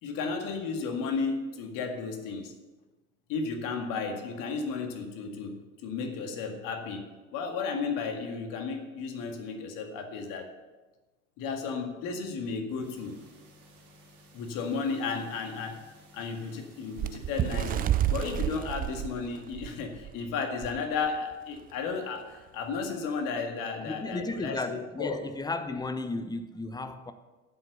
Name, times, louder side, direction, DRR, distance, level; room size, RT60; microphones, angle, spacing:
voice 1, 0.0-2.5 3.3-10.5 11.4-13.1 14.3-15.8 16.1-25.2, left 5 dB, 50° left, 2.1 m, -34 dB
sound 1, 12.8-18.4, equal, 60° right, 3.9 m, -56 dB
Bird, 17.0-20.2 20.6-20.8 21.1-21.3 22.1-22.2, right 12 dB, 20° right, 0.4 m, -30 dB
voice 2, 23.8-27.1, left 2 dB, 10° left, 0.8 m, -34 dB
11.5 x 7.9 x 6.9 m
figure-of-eight pair, 70°, 42 cm